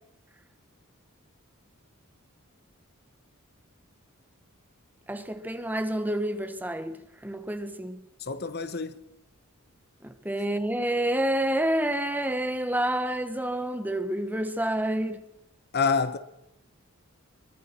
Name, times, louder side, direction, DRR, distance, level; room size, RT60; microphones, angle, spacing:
voice 1, 5.1-8.0 10.0-15.2, right 1 dB, 10° right, 1.0 m, -28 dB
voice 2, 8.2-9.0 15.7-16.2, left 5 dB, 50° left, 1.2 m, -27 dB
26.0 x 22.5 x 4.4 m
head